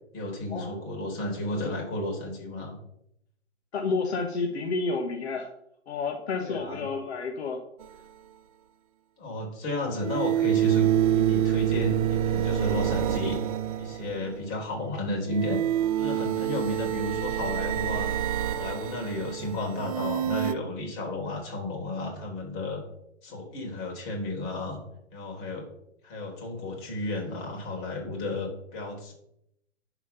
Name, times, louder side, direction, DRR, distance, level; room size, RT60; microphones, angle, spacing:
voice 1, 0.1-2.7 6.4-6.8 9.2-10.9 11.1-13.4 13.8-15.6 16.0-18.1 18.5-22.8 23.2-24.8 25.1-25.7 26.0-29.1, left 1 dB, 30° left, 0 dB, 3.9 m, -33 dB
voice 2, 3.7-5.5 5.9-7.6, left 4 dB, 65° left, 3 dB, 1.5 m, -30 dB
sound 1, 7.8-7.9 10.0-14.4 15.3-20.5, right 11 dB, 30° right, 0.4 m, -27 dB
11.0 x 4.9 x 5.8 m, 0.78 s
hypercardioid pair, 135°, 35 cm